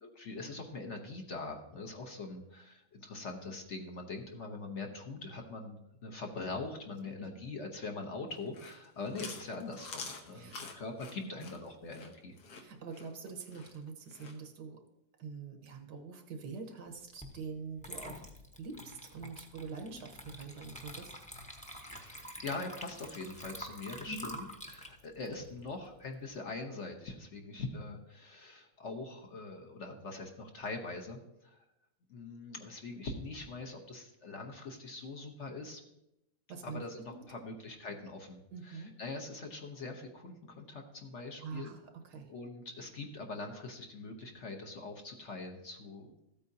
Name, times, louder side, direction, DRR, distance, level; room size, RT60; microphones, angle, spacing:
voice 1, 0.0-12.3 21.9-31.6 32.1-35.8 36.6-41.8 42.3-46.1, left 3 dB, 50° left, 2 dB, 1.2 m, -43 dB
Chewing mastication, 8.4-14.4, left 4 dB, 80° left, 1.6 m, -47 dB
voice 2, 10.3-10.6 11.2-11.6 12.6-14.8 15.2-18.3 18.6-21.1 24.1-24.3 36.5-36.8 37.1-37.3 38.5-38.9 41.4-42.3, right 5 dB, 85° right, 5 dB, 1.7 m, -45 dB
Water / Liquid, 17.2-17.4 17.8-26.3, equal, 5° left, 0.7 m, -47 dB
14.0 x 8.5 x 2.7 m, 0.86 s
omnidirectional pair, 1.8 m